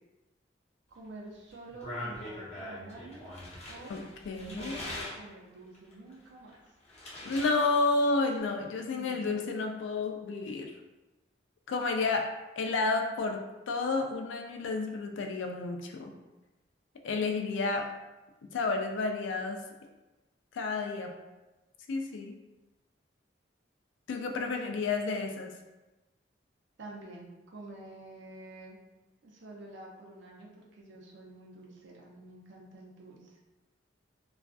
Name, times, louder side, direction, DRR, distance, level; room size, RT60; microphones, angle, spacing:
voice 1, 0.9-3.3 3.7-3.9 4.5-6.5 8.8-9.4 17.5-17.9 24.4-24.9 26.8-28.8 29.2-33.4, right 2 dB, 75° right, -2 dB, 0.5 m, -48 dB
sound 1, 1.5-5.2 5.7-7.6 7.8-8.4, left 1 dB, 35° left, 0.6 m, -42 dB
voice 2, 3.9-4.8 7.2-10.7 11.7-12.3 12.6-16.2 17.0-17.8 18.5-19.6 20.5-21.1 21.9-22.4 24.1-25.6, left 3 dB, 85° left, 4 dB, 0.3 m, -31 dB
2.4 x 2.3 x 2.3 m, 1.1 s
head